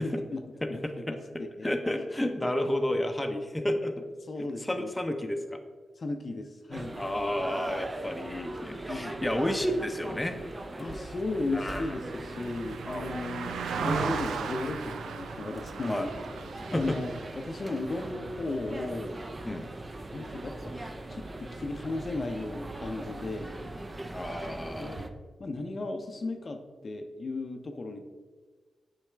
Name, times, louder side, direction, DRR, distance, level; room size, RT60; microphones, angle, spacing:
voice 1, 0.0-0.4 0.7-1.7 2.4-2.5 4.3-4.9 6.0-7.0 8.8-9.2 10.8-16.1 16.7-19.1 20.1-23.6 24.8-25.1 25.4-28.0, left 2 dB, 50° left, 5 dB, 0.6 m, -35 dB
voice 2, 0.6-1.2 1.6-4.0 4.4-5.6 7.0-10.4 11.5-11.9 12.8-13.1 15.9-16.1 16.7-16.9 19.4-19.6 24.1-25.0, left 1 dB, 10° left, 5 dB, 0.7 m, -31 dB
chinatown centre mall, 6.7-25.1, right 2 dB, 30° right, 0.6 m, -40 dB
Car passing by, 10.3-19.8 20.2-20.4, right 6 dB, 90° right, 0.3 m, -38 dB
7.3 x 4.8 x 3.3 m, 1.4 s
cardioid pair, 60°, 0 cm